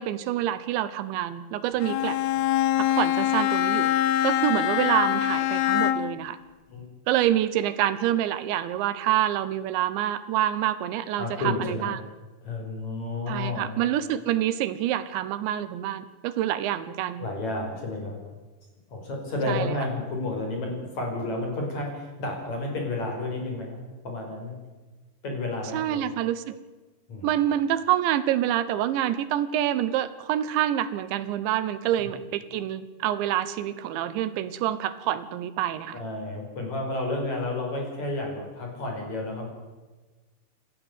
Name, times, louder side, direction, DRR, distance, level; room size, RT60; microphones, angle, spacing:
voice 1, 0.0-2.2 2.8-3.9 4.2-6.4 7.1-12.0 13.3-17.3 19.5-19.7 25.7-26.6 27.2-36.0, right 12 dB, 80° right, 13 dB, 3.3 m, -27 dB
Bowed string instrument, 1.8-6.2, left 12 dB, 75° left, 2.7 m, -24 dB
voice 2, 11.2-12.0 12.4-13.7 17.2-18.2 18.9-23.8 24.0-24.6 25.2-26.1 27.1-27.3 32.0-32.1 35.9-39.5, left 2 dB, 40° left, 1 dB, 6.4 m, -31 dB
28.5 x 14.0 x 8.1 m, 1.2 s
omnidirectional pair, 5.2 m